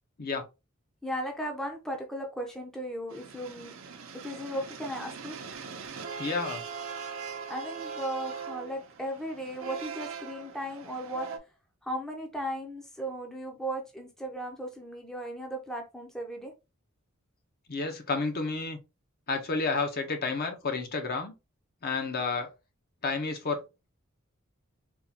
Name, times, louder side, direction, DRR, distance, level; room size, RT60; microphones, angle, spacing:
voice 1, 1.0-3.7 4.2-5.4 7.5-11.3 11.8-16.5, right 1 dB, ahead, 0.5 m, -36 dB
sound 1, 3.1-11.4, right 6 dB, 70° right, 0.6 m, -41 dB
voice 2, 6.2-6.6 17.7-18.8 19.3-21.3 21.8-22.5 23.0-23.6, left 4 dB, 50° left, 0.7 m, -30 dB
3.7 x 2.3 x 2.8 m
head